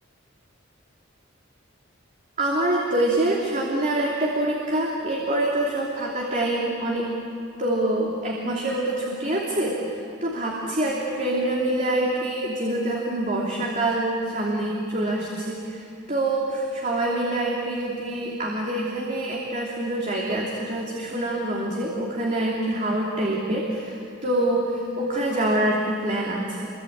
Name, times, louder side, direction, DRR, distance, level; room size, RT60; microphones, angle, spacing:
voice 1, 2.4-7.1 7.6-26.7, right 1 dB, 40° right, -3 dB, 3.0 m, -25 dB
27.0 x 23.5 x 8.8 m, 2.6 s
head